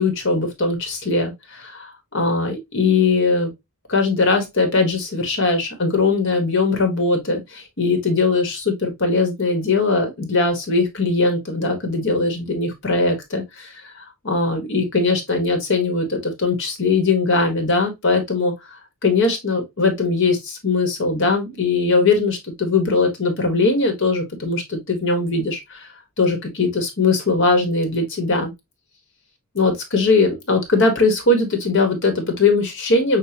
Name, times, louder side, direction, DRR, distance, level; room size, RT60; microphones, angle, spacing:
voice 1, 0.0-3.5 3.9-18.5 19.0-25.9 26.2-28.5 29.5-33.2, left 3 dB, 60° left, 1.6 m, -20 dB
6.9 x 2.6 x 2.8 m
head